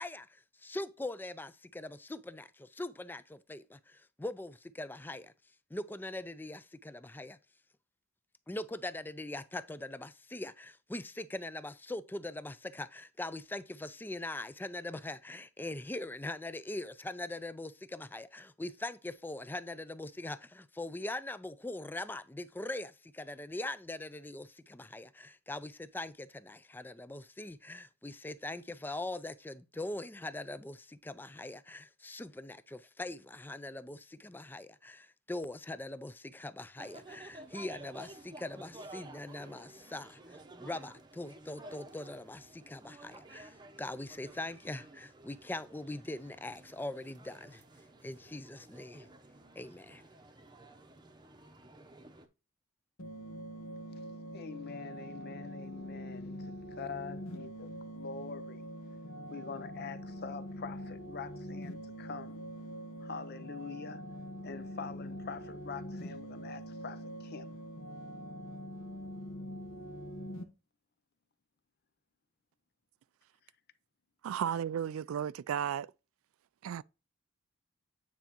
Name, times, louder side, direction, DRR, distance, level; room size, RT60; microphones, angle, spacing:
voice 1, 0.0-5.3 5.7-7.4 8.5-47.6 48.0-49.1 49.6-50.0, left 2 dB, 10° left, 0.4 m, -42 dB
sound 1, 36.8-52.3, right 2 dB, 20° right, 0.8 m, -53 dB
sound 2, 53.0-70.4, equal, 75° left, 0.9 m, -44 dB
voice 2, 54.3-58.7 59.3-62.4 63.0-64.1 64.4-67.6 74.5-74.6, left 5 dB, 50° left, 0.6 m, -45 dB
voice 3, 74.2-75.9 76.6-76.8, right 9 dB, 85° right, 0.3 m, -34 dB
9.2 x 4.7 x 3.0 m
head